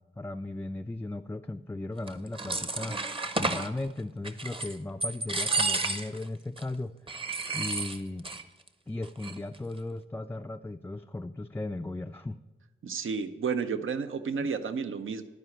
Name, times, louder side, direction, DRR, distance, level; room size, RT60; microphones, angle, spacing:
voice 1, 0.0-3.0 3.4-6.9 7.5-8.3 8.9-12.4 14.4-14.5, left 2 dB, 10° left, 6 dB, 0.4 m, -36 dB
sound 1, 2.1-3.7 4.2-4.8 5.0-6.2 6.6-6.7 7.1-8.4 8.7-8.8 9.0-9.6, right 3 dB, 25° right, 0.9 m, -31 dB
voice 2, 12.8-15.2, right 5 dB, 70° right, 10 dB, 0.7 m, -31 dB
11.5 x 4.9 x 7.7 m, 1.2 s
cardioid pair, 50°, 21 cm